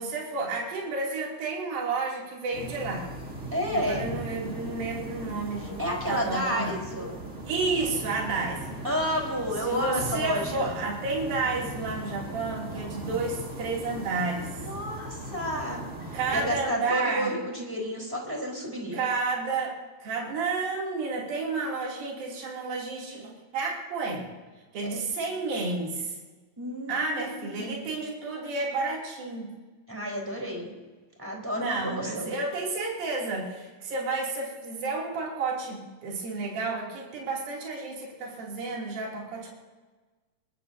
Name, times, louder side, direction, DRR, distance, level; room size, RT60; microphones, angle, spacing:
voice 1, 0.0-3.1 3.7-6.7 7.5-8.6 9.6-14.5 16.1-17.3 18.9-19.7 20.0-24.3 24.7-26.2 26.9-29.5 31.5-39.5, right 3 dB, 70° right, -3 dB, 4.6 m, -31 dB
sound 1, 2.5-16.6, right 1 dB, 25° right, 2.4 m, -39 dB
voice 2, 3.5-4.1 5.6-7.2 8.8-10.7 14.5-19.0 24.8-25.0 26.6-27.8 29.9-30.7 31.2-32.3, equal, 5° right, -2 dB, 3.7 m, -31 dB
23.5 x 21.5 x 2.8 m, 1.3 s
omnidirectional pair, 4.3 m